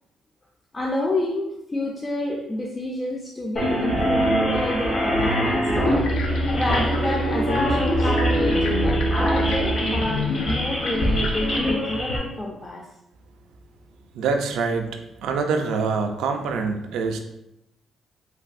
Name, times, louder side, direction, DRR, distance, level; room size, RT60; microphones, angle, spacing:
voice 1, 0.7-5.7 6.5-12.9, left 1 dB, 25° left, -1 dB, 0.4 m, -29 dB
sound 1, 3.6-12.2, equal, 45° left, 0.8 m, -24 dB
sound 2, 3.9-9.8, right 2 dB, 75° left, 1.5 m, -27 dB
sound 3, 5.8-11.6, left 3 dB, 90° left, 0.4 m, -31 dB
voice 2, 14.1-14.9 15.2-17.2, right 4 dB, 85° right, 5 dB, 0.3 m, -25 dB
3.2 x 2.6 x 2.4 m, 0.87 s
cardioid pair, 90°, 0 cm